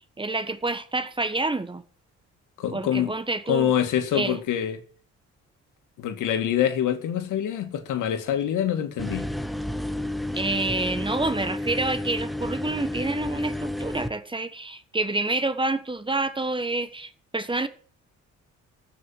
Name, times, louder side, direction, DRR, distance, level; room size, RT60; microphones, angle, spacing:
voice 1, 0.2-1.8 2.7-3.7 4.1-4.4 10.3-17.7, right 2 dB, 15° right, 1.4 m, -28 dB
voice 2, 2.6-3.1 3.5-4.8 6.0-9.3, left 10 dB, 85° left, 2.3 m, -25 dB
sound 1, 9.0-14.1, left 1 dB, ahead, 1.2 m, -31 dB
14.5 x 6.3 x 9.2 m
cardioid pair, 90°, 30 cm